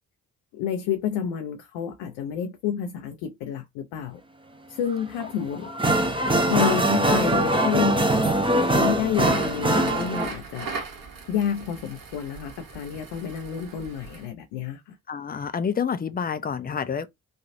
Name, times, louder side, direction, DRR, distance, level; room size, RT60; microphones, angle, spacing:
voice 1, 0.5-4.2 4.7-5.7 6.5-8.1 8.7-10.7 11.3-15.0, left 8 dB, 70° left, 0.6 m, -29 dB
sound 1, 4.9-5.0 5.5-10.3, right 1 dB, 10° right, 0.7 m, -22 dB
Crackle, 9.0-14.3, right 4 dB, 50° right, 1.3 m, -38 dB
voice 2, 15.1-17.1, left 7 dB, 20° left, 0.5 m, -29 dB
3.2 x 2.3 x 2.6 m
hypercardioid pair, 40°, 42 cm